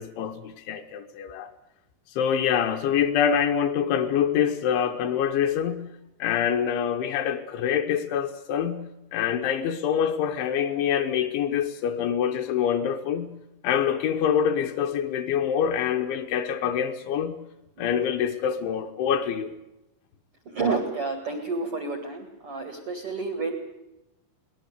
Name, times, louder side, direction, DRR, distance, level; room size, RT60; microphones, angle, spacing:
voice 1, 0.0-1.5 2.1-5.9 6.2-8.9 9.1-13.3 13.6-17.4 17.8-19.5, left 8 dB, 75° left, 5 dB, 3.0 m, -25 dB
voice 2, 20.5-23.6, right 4 dB, 85° right, 6 dB, 1.2 m, -30 dB
23.0 x 19.0 x 8.1 m, 0.94 s
omnidirectional pair, 6.0 m